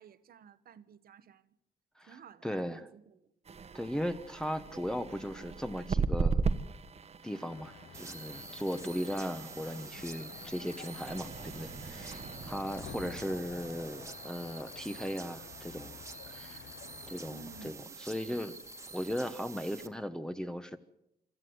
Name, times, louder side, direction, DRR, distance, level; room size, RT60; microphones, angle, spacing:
voice 1, 0.0-1.6 2.1-3.3 12.9-13.7 17.3-18.4, right 7 dB, 65° right, 1.2 m, -54 dB
voice 2, 2.4-2.8 3.7-6.4 7.2-15.9 16.3-16.7 17.1-17.7 18.0-18.5 18.9-20.8, equal, 5° left, 1.1 m, -37 dB
sound 1, 3.4-14.2, right 5 dB, 40° right, 1.2 m, -38 dB
sound 2, 7.5-17.7, left 10 dB, 80° left, 0.9 m, -51 dB
sound 3, 7.9-19.9, right 3 dB, 15° right, 1.7 m, -47 dB
26.5 x 13.5 x 7.9 m
cardioid pair, 100°, 16 cm